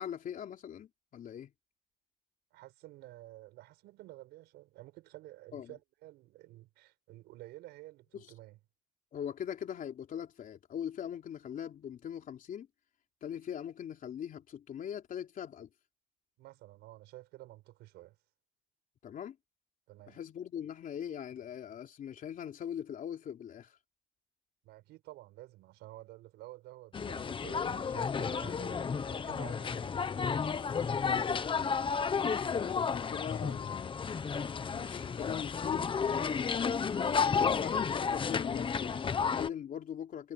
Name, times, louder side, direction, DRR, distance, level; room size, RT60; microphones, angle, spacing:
voice 1, 0.0-1.5 5.5-5.7 8.1-8.3 9.1-12.7 13.2-15.7 19.0-19.4 20.1-23.8 31.1-31.7 32.4-33.9 34.7-40.3, left 9 dB, 55° left, 3.5 m, -41 dB
voice 2, 2.5-8.6 16.4-18.2 19.9-20.2 24.6-30.4 32.9-33.7, right 17 dB, 85° right, 5.8 m, -51 dB
sound 1, 26.9-39.5, left 6 dB, 30° left, 1.1 m, -32 dB
cardioid pair, 110°, 17 cm